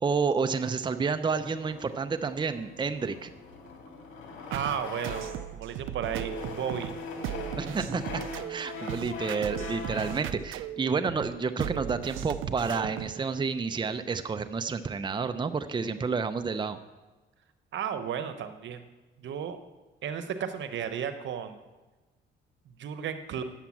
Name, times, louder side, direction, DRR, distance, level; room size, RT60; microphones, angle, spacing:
voice 1, 0.0-3.3 7.6-16.8, right 5 dB, 25° right, 9 dB, 0.6 m, -30 dB
sound 1, 1.4-5.6 6.0-10.3, left 4 dB, 85° left, 2.0 m, -41 dB
voice 2, 4.5-6.9 17.7-18.8 19.2-19.6 20.0-21.6 22.7-23.4, right 8 dB, 70° right, 9 dB, 1.0 m, -34 dB
sound 2, 4.5-13.2, right 13 dB, 90° right, 0.5 m, -37 dB
9.0 x 7.3 x 7.2 m, 1.2 s
cardioid pair, 90°, 20 cm